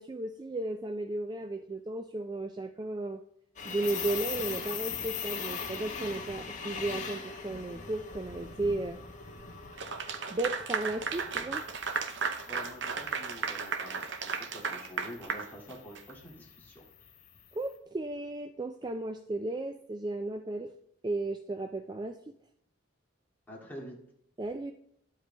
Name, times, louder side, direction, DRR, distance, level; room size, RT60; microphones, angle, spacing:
voice 1, 0.0-3.2 3.6-9.0 10.3-11.6 17.5-20.7 21.0-22.2 24.4-24.7, right 2 dB, 20° right, 8 dB, 0.3 m, -34 dB
sound 1, 3.6-17.6, left 6 dB, 35° left, 1.3 m, -41 dB
Clapping / Applause, 9.8-16.1, right 5 dB, 60° right, 0.7 m, -35 dB
voice 2, 12.5-16.8 23.5-24.0, equal, 10° left, -4 dB, 2.1 m, -47 dB
11.5 x 7.9 x 3.3 m, 0.70 s
head